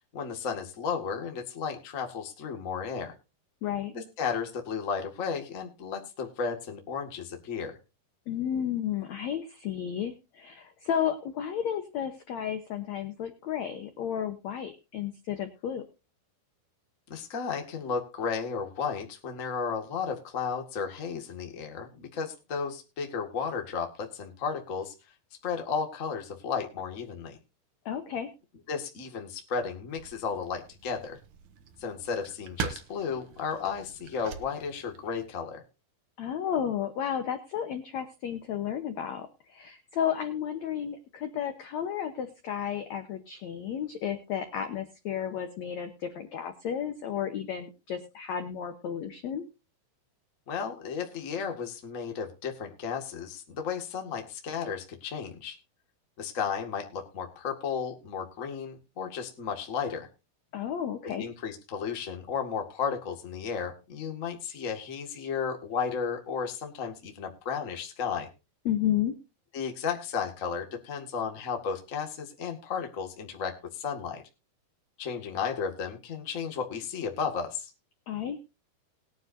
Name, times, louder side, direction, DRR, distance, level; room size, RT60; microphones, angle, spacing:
voice 1, 0.1-3.1 3.9-7.8 17.1-24.9 25.4-27.4 28.7-31.2 31.8-35.6 50.5-55.6 56.2-60.1 61.2-68.3 69.5-74.2 75.0-77.7, left 6 dB, 35° left, 4 dB, 1.3 m, -34 dB
voice 2, 3.6-3.9 8.3-15.8 27.8-28.3 36.2-49.4 60.5-61.2 68.6-69.1 78.1-78.4, left 9 dB, 70° left, 8 dB, 1.7 m, -32 dB
sound 1, 29.9-35.3, right 7 dB, 65° right, 2.5 m, -42 dB
20.5 x 9.5 x 2.7 m, 0.29 s
omnidirectional pair, 4.5 m